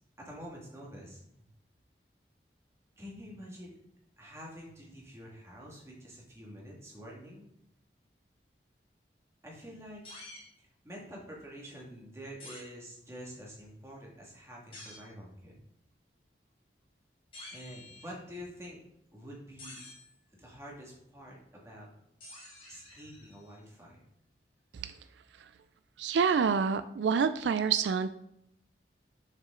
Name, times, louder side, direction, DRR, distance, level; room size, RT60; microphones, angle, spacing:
voice 1, 0.2-1.2 3.0-3.8 4.2-7.5 9.4-10.0 10.8-15.5 17.5-18.8 19.1-19.8 20.4-21.9 22.7-24.0, equal, 15° right, -3 dB, 1.9 m, -47 dB
sound 1, 10.0-10.5 12.4-12.6 14.7-15.1 17.3-18.3 19.6-20.1 22.2-23.6, left 2 dB, 30° left, 2.1 m, -49 dB
voice 2, 26.0-28.1, right 6 dB, 90° right, 12 dB, 0.4 m, -27 dB
6.6 x 6.2 x 3.8 m, 0.78 s
head